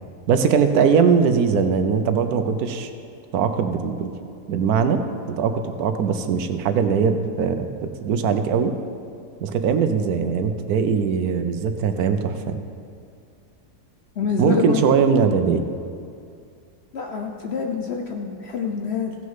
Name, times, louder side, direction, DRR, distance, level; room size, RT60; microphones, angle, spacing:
voice 1, 0.3-2.9 3.3-4.1 4.5-5.0 5.3-8.7 9.4-12.6 14.4-15.7, right 6 dB, 70° right, 8 dB, 1.1 m, -21 dB
voice 2, 14.2-15.0 16.9-19.2, left 5 dB, 60° left, 3 dB, 0.7 m, -26 dB
15.5 x 6.2 x 5.6 m, 2.4 s
omnidirectional pair, 1.7 m